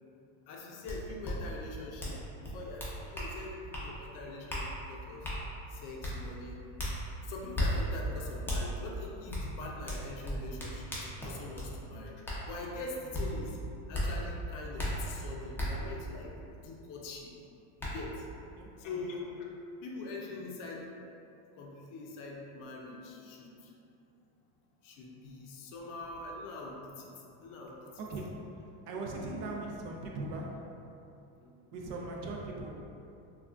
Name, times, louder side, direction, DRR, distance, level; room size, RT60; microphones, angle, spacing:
voice 1, 0.5-5.3 5.7-6.6 7.2-13.6 13.9-16.3 16.6-17.3 17.8-18.3 18.8-19.3 19.8-20.8 21.6-23.7 24.8-27.1 27.4-27.7 29.2-29.5 31.3-31.5, left 3 dB, 55° left, -2 dB, 0.5 m, -43 dB
pencil hits, 0.9-1.0 1.2-1.3 2.0-2.2 2.4-3.3 3.7-3.9 4.5-4.6 5.2-5.4 6.0-6.1 6.8-6.9 7.5-7.7 8.5-8.6 9.3-9.4 9.9-11.7 12.2-12.4 13.1-13.2 13.9-14.1 14.8-14.9 15.6-15.7 17.2-17.3 17.8-17.9, left 1 dB, 5° left, 0.5 m, -34 dB
voice 2, 18.6-19.1 27.8-28.4 28.9-30.6 31.7-32.9, right 2 dB, 50° right, -1 dB, 0.5 m, -40 dB
3.3 x 2.3 x 2.4 m, 2.8 s
supercardioid pair, 115°, 40 cm